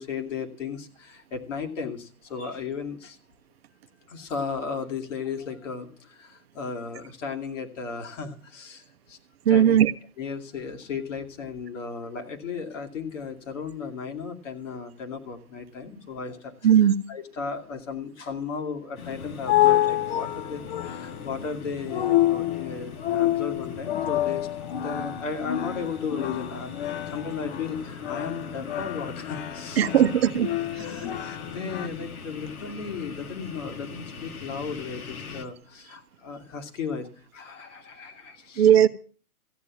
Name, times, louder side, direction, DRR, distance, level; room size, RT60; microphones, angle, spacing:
voice 1, 0.0-3.2 4.1-9.2 9.5-9.8 10.2-26.7 27.1-29.9 30.8-37.1 37.3-38.7, left 5 dB, 55° left, 2.7 m, -35 dB
voice 2, 9.5-9.9 16.6-17.0 29.8-30.5 38.6-38.9, right 10 dB, 45° right, 0.7 m, -17 dB
sound 1, 19.0-35.4, left 4 dB, 70° left, 2.1 m, -41 dB
sound 2, 19.0-31.9, left 14 dB, 40° left, 0.7 m, -28 dB
15.0 x 9.3 x 7.4 m
figure-of-eight pair, 125°, 45 cm